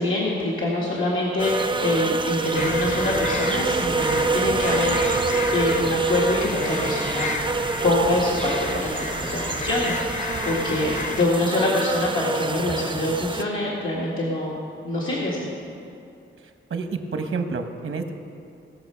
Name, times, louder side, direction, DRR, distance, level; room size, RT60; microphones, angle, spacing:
voice 1, 0.0-7.3 7.8-14.5 14.8-15.4, left 2 dB, 90° left, -6 dB, 1.8 m, -25 dB
sound 1, 1.4-13.4, right 4 dB, 25° right, 0.4 m, -26 dB
sound 2, 2.6-11.3, left 3 dB, 35° left, 0.6 m, -31 dB
voice 2, 16.7-18.1, right 4 dB, 80° right, 6 dB, 0.9 m, -28 dB
18.0 x 6.5 x 5.6 m, 2.6 s
wide cardioid pair, 160°, 21 cm